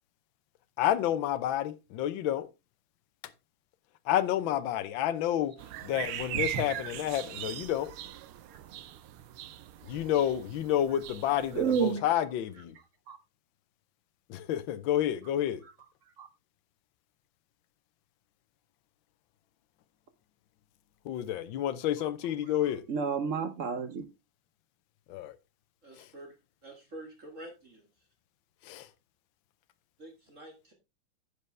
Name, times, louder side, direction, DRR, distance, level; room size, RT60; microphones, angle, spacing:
voice 1, 0.8-2.5 4.1-5.5 5.8-7.9 9.8-12.7 14.3-15.6 21.0-22.8 25.1-25.4 28.6-28.9, left 11 dB, 70° left, 1.5 m, -29 dB
sound 1, 5.6-11.9, right 12 dB, 90° right, 1.6 m, -39 dB
voice 2, 11.5-12.0 13.1-13.2 16.2-16.3 22.9-24.0, right 6 dB, 60° right, 0.8 m, -30 dB
voice 3, 25.8-26.3 26.6-28.1 30.0-30.7, right 1 dB, 35° right, 2.1 m, -48 dB
10.0 x 6.8 x 3.3 m
omnidirectional pair, 2.3 m